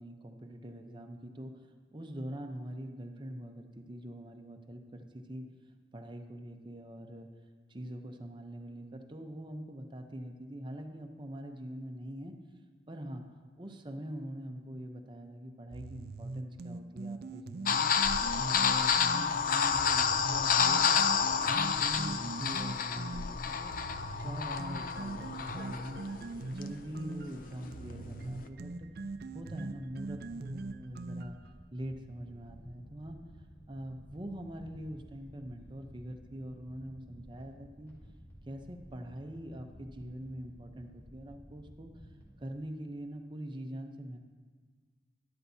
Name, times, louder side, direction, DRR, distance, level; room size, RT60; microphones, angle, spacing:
voice 1, 0.0-5.5 5.9-7.3 7.7-12.4 12.9-13.2 13.6-17.9 18.3-21.0 21.4-23.7 24.1-26.0 26.5-28.9 29.3-31.4 31.7-33.2 33.7-37.9 38.5-41.9 42.4-44.2, right 1 dB, 25° right, 4 dB, 0.7 m, -43 dB
sound 1, 15.7-19.3 19.7-23.3 23.7-31.5, right 3 dB, 55° right, 0.4 m, -42 dB
sound 2, 17.7-28.4, left 6 dB, 50° left, 0.4 m, -29 dB
sound 3, 27.7-42.5, equal, 15° left, 2.8 m, -54 dB
12.5 x 11.5 x 2.7 m, 1.6 s
head